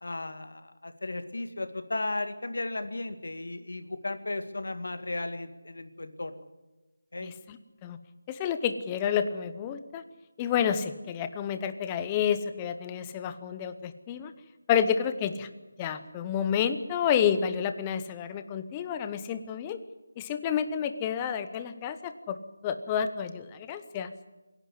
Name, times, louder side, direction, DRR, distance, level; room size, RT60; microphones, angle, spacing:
voice 1, 0.0-6.5 7.1-7.3, left 2 dB, 65° left, 10 dB, 2.2 m, -35 dB
voice 2, 7.2-7.6 7.8-8.0 8.3-10.0 10.4-14.3 14.7-15.5 15.8-19.8 20.2-22.4 22.6-24.1, left 8 dB, 10° left, 10 dB, 0.7 m, -29 dB
25.5 x 11.0 x 9.8 m, 1.1 s
figure-of-eight pair, 175°, 0 cm